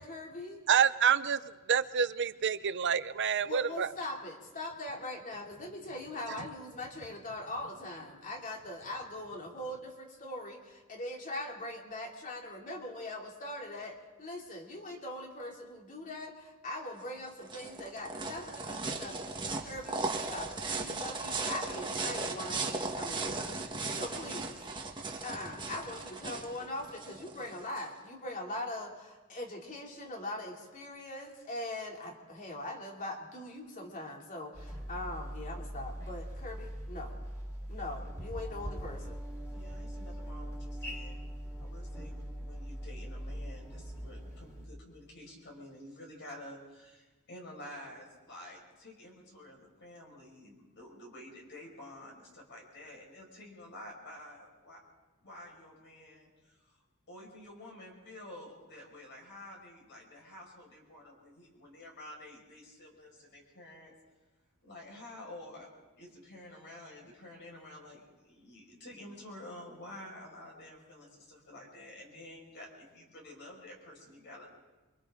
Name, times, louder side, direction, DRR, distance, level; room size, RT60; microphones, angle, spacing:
voice 1, 0.0-0.6 3.4-19.3 19.6-20.0 20.3-24.6 25.2-37.3 37.7-39.2, left 1 dB, 40° left, 3.1 m, -41 dB
voice 2, 0.7-3.9, right 7 dB, 55° right, 0.7 m, -28 dB
sound 1, 17.0-27.9, right 3 dB, 20° right, 1.5 m, -37 dB
sound 2, 34.5-44.7, equal, 15° left, 3.7 m, -41 dB
voice 3, 39.5-41.2 41.6-54.8 55.2-56.8 57.1-64.0 64.6-65.7 66.0-74.5, left 1 dB, 55° left, 5.9 m, -50 dB
28.5 x 24.5 x 3.9 m
head